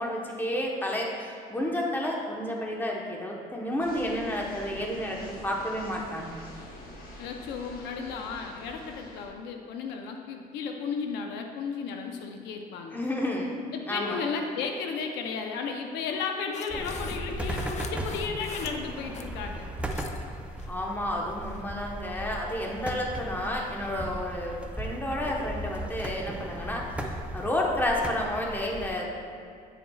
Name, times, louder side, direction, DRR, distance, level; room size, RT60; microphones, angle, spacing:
voice 1, 0.0-6.3 12.9-13.6 13.9-14.2 20.7-29.1, left 1 dB, 10° left, -1 dB, 1.0 m, -31 dB
sound 1, 3.8-9.3, left 1 dB, 60° left, 1.3 m, -46 dB
voice 2, 7.2-13.0 13.7-19.7, left 5 dB, 85° left, 3 dB, 0.7 m, -34 dB
sound 2, 16.5-19.3 19.6-20.2 20.6-20.9 21.4-21.6, left 6 dB, 45° left, 0.4 m, -44 dB
sound 3, 16.7-28.9, right 1 dB, 5° right, 0.6 m, -37 dB
8.5 x 7.0 x 2.3 m, 2.3 s
cardioid pair, 110°, 17 cm